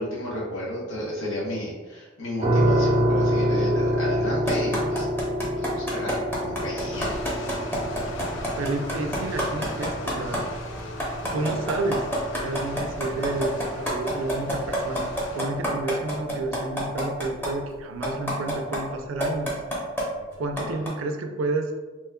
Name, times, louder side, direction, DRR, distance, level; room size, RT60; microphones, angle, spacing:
voice 1, 0.0-5.1 5.6-7.1 20.2-20.3, left 1 dB, 85° left, -5 dB, 1.1 m, -32 dB
sound 1, 2.4-15.3, equal, 30° right, 0.5 m, -28 dB
sound 2, 4.5-10.4 10.8-17.5 18.0-18.8 19.2-20.0 20.6-20.9, equal, 10° left, 0.7 m, -27 dB
sound 3, 6.9-15.4, left 2 dB, 65° left, 0.4 m, -39 dB
voice 2, 8.6-10.4 11.3-12.1 12.4-19.5 20.4-21.7, right 2 dB, 90° right, 5 dB, 0.4 m, -30 dB
2.9 x 2.2 x 3.5 m, 1.3 s
head